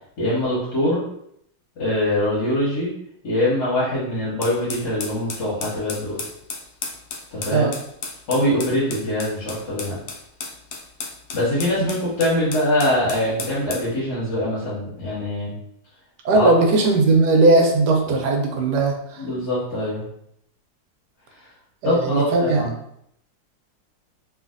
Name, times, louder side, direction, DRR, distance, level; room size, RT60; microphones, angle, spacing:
voice 1, 0.2-1.0 1.8-2.9 3.2-6.2 7.3-7.7 8.3-10.0 11.3-15.5 16.3-16.5 19.2-20.0 21.8-22.7, left 1 dB, 65° left, -9 dB, 1.7 m, -23 dB
sound 1, 4.4-13.9, left 4 dB, 85° left, 0.7 m, -34 dB
voice 2, 16.2-19.3 21.8-22.6, right 3 dB, 70° right, 2 dB, 1.1 m, -18 dB
3.2 x 2.8 x 2.5 m, 0.73 s
omnidirectional pair, 2.0 m